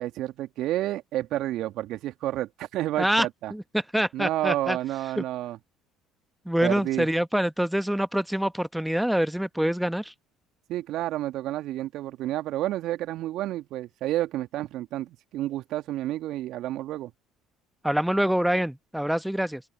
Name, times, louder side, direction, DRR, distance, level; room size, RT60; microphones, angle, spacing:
voice 1, 0.0-3.5 4.1-5.6 6.6-7.1 10.7-17.1, right 14 dB, 60° right, 2.3 m, -30 dB
voice 2, 3.5-4.8 5.2-5.3 6.5-10.1 17.8-19.6, equal, 5° right, 1.1 m, -25 dB
open air
hypercardioid pair, 60°, 0 cm